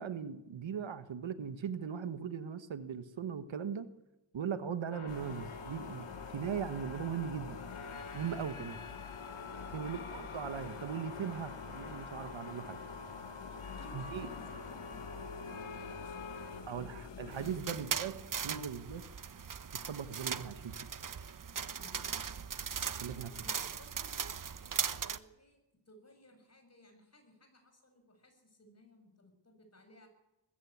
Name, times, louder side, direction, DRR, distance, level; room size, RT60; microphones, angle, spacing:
voice 1, 0.0-3.9 4.3-6.1 6.3-7.6 8.1-8.8 9.7-12.8 13.9-14.3 16.7-19.0 19.9-20.8 23.0-23.3, right 7 dB, 70° right, 11 dB, 1.5 m, -39 dB
sound 1, 4.9-16.6, left 4 dB, 80° left, 3.1 m, -47 dB
sound 2, 5.1-17.6, left 6 dB, 60° left, 2.2 m, -48 dB
voice 2, 9.5-9.9 13.5-17.7 21.5-22.4 23.2-30.1, left 1 dB, 30° left, 6 dB, 6.9 m, -59 dB
sound 3, 17.3-25.2, right 7 dB, 40° right, 1.0 m, -39 dB
21.0 x 15.5 x 8.6 m, 0.95 s
cardioid pair, 85°, 48 cm